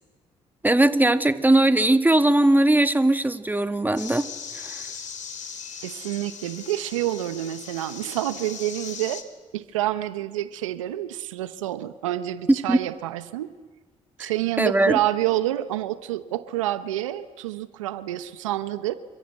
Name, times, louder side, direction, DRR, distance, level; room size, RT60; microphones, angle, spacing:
voice 1, 0.6-4.3 4.6-4.8 12.5-12.8 14.2-14.3 14.6-15.0, right 1 dB, 10° right, 9 dB, 1.9 m, -19 dB
sound 1, 4.0-9.2, left 6 dB, 50° left, 3.7 m, -38 dB
voice 2, 5.8-9.2 9.5-13.5 14.2-19.0, right 14 dB, 90° right, 13 dB, 0.9 m, -28 dB
28.0 x 25.0 x 8.1 m, 1.3 s
hypercardioid pair, 50°, 16 cm